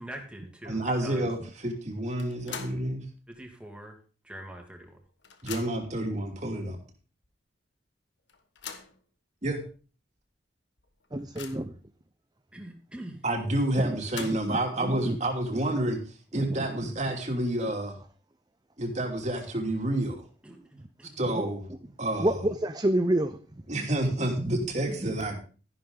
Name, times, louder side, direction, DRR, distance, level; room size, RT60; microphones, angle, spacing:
voice 1, 0.0-1.3 3.3-4.0 4.2-5.0 12.5-13.2 20.4-21.1, right 1 dB, 5° right, 2.6 m, -43 dB
voice 2, 0.7-3.0 5.4-6.8 9.4-9.6 13.2-16.0 16.3-18.0 18.8-20.2 21.2-21.6 22.0-22.4 23.7-25.4, right 1 dB, 40° right, 2.9 m, -29 dB
sound 1, 2.2-2.9 3.3-3.4 4.5-4.6 4.9-6.0 6.7-6.8 7.2-7.3 8.3-9.0 9.7-9.8 10.2-10.3 10.8-11.8 13.8-14.7, left 6 dB, 70° left, 1.7 m, -43 dB
voice 3, 11.1-11.7 13.8-14.0 14.5-15.2 15.5-15.6 16.3-16.9 21.3-21.5 22.2-22.3 22.6-23.4 25.0-25.1, right 1 dB, 20° right, 0.7 m, -29 dB
13.5 x 11.5 x 3.9 m
head